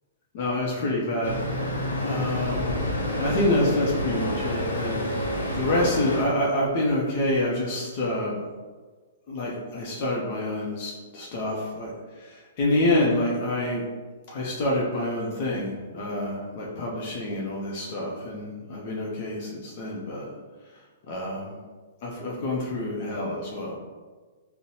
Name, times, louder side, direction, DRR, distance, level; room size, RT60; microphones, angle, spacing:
voice 1, 0.3-1.4 2.0-2.7 3.2-8.4 9.3-13.8 14.3-20.3 21.1-21.6 22.0-23.7, left 1 dB, 50° left, -4 dB, 0.7 m, -27 dB
Traffic noise roadway noise, 1.2-6.2, left 1 dB, 85° left, 0.8 m, -29 dB
3.8 x 2.1 x 2.8 m, 1.4 s
hypercardioid pair, 120°, 0 cm